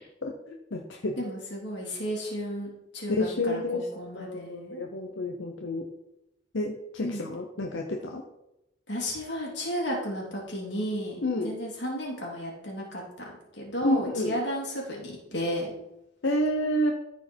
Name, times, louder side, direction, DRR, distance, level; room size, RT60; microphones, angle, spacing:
voice 1, 0.2-1.2 3.2-3.8 4.2-5.9 6.5-8.2 11.2-11.5 13.8-14.3 16.2-16.9, left 1 dB, 85° left, 1 dB, 0.9 m, -29 dB
voice 2, 1.2-4.8 7.0-7.3 8.9-13.3 13.5-15.7, equal, 65° left, -3 dB, 3.0 m, -33 dB
13.5 x 4.6 x 4.5 m, 0.89 s
head